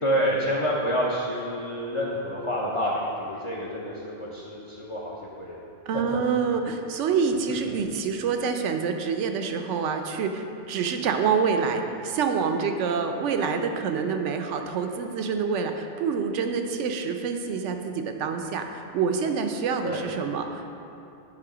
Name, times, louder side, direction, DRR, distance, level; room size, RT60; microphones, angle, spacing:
voice 1, 0.0-5.6 19.8-20.1, equal, 35° left, -5 dB, 0.6 m, -28 dB
voice 2, 5.9-20.7, right 5 dB, 80° right, 6 dB, 0.9 m, -27 dB
9.2 x 3.1 x 4.9 m, 2.8 s
omnidirectional pair, 1.2 m